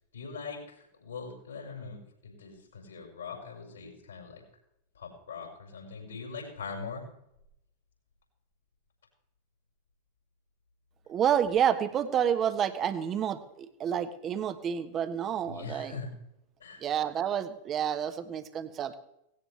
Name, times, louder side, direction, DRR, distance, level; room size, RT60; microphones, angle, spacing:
voice 1, 0.1-4.4 4.9-7.0 15.4-16.1 16.6-16.9, left 5 dB, 70° left, -1 dB, 5.9 m, -42 dB
voice 2, 11.1-16.0 16.8-18.9, right 9 dB, 30° right, 11 dB, 1.3 m, -29 dB
18.0 x 16.5 x 3.4 m, 0.80 s
figure-of-eight pair, 90°, 0 cm